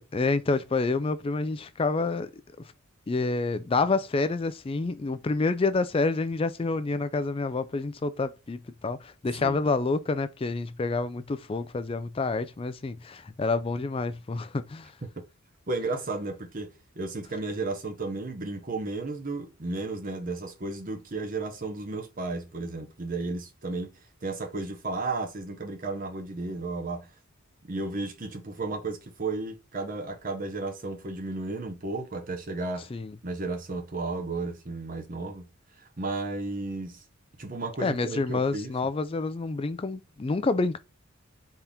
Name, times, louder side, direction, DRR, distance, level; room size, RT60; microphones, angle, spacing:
voice 1, 0.0-2.3 3.1-14.9 32.9-33.1 37.8-40.8, left 3 dB, 25° left, 0.3 m, -28 dB
voice 2, 15.7-23.9 24.2-27.1 27.6-32.9 33.2-35.5 35.8-37.0 37.4-38.7, right 3 dB, 40° right, 0.8 m, -33 dB
4.2 x 3.6 x 3.5 m
head